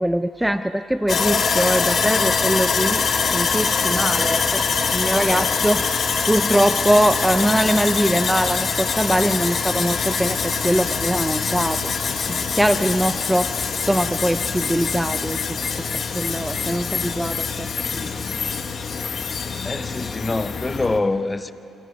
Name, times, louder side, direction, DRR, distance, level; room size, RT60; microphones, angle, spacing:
voice 1, 0.0-3.0 3.3-4.7 4.9-11.9 12.5-13.5 13.8-15.6 16.1-18.2, right 1 dB, 5° right, 0.5 m, -22 dB
Sawing, 1.1-21.0, left 5 dB, 50° left, 1.5 m, -24 dB
voice 2, 19.6-21.5, left 2 dB, 20° left, 0.9 m, -25 dB
29.0 x 27.0 x 5.3 m
cardioid pair, 90°, 0 cm